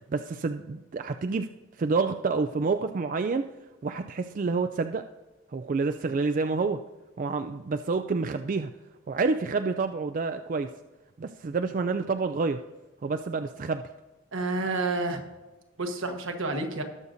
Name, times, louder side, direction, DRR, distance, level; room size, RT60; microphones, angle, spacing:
voice 1, 0.0-3.5 3.8-5.0 5.5-6.8 7.2-8.7 9.1-10.7 11.2-12.6 13.0-13.9, right 4 dB, 40° right, 8 dB, 0.3 m, -28 dB
voice 2, 14.3-15.2 15.8-16.8, right 2 dB, 80° right, 4 dB, 1.3 m, -29 dB
19.0 x 6.5 x 2.6 m, 1.1 s
head